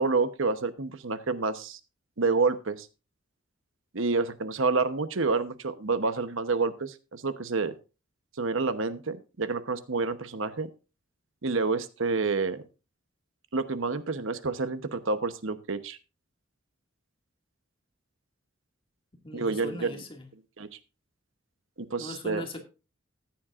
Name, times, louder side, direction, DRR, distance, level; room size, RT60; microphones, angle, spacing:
voice 1, 0.0-1.8 2.2-2.9 3.9-7.7 8.4-10.7 11.4-12.6 13.5-16.0 19.3-19.9 20.6-20.7 21.9-22.4, right 4 dB, 70° right, 11 dB, 1.0 m, -28 dB
voice 2, 19.2-20.3 22.0-22.6, left 1 dB, 25° left, 3 dB, 2.1 m, -39 dB
14.5 x 10.5 x 2.5 m, 0.31 s
head